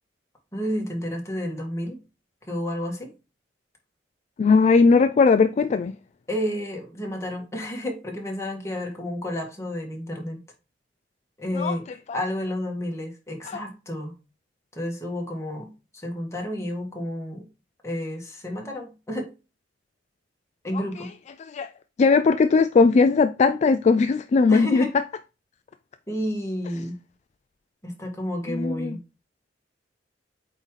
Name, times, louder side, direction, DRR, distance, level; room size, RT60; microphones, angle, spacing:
voice 1, 0.5-2.0 2.5-3.1 6.3-10.4 11.4-11.8 12.1-14.1 14.7-17.5 17.8-19.3 20.6-21.1 24.5-24.9 26.1-27.0 27.8-29.0, equal, 15° left, 1.8 m, -31 dB
voice 2, 4.4-6.0 11.6-11.8 12.1-12.2 13.4-13.6 20.7-21.1 21.4-21.7 22.0-24.9 28.5-29.0, left 4 dB, 40° left, 0.3 m, -19 dB
8.3 x 3.7 x 3.1 m
head